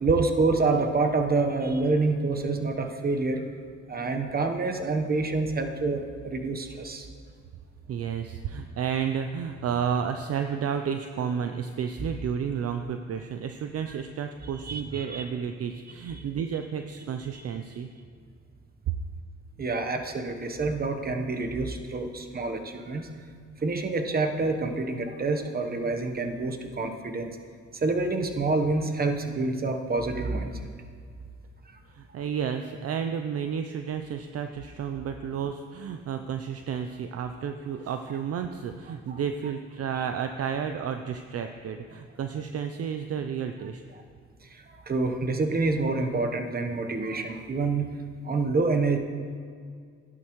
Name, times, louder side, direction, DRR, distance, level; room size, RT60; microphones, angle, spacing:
voice 1, 0.0-3.4 3.9-7.1 14.6-15.2 16.1-16.3 17.3-17.4 19.6-23.1 23.6-27.3 27.7-30.7 31.7-31.8 39.1-39.2 44.4-48.0 48.2-49.0, right 3 dB, 30° right, 5 dB, 1.0 m, -27 dB
voice 2, 7.9-17.9 31.9-43.8, right 7 dB, 50° right, 7 dB, 0.5 m, -31 dB
12.5 x 11.0 x 3.1 m, 2.1 s
cardioid pair, 90°, 30 cm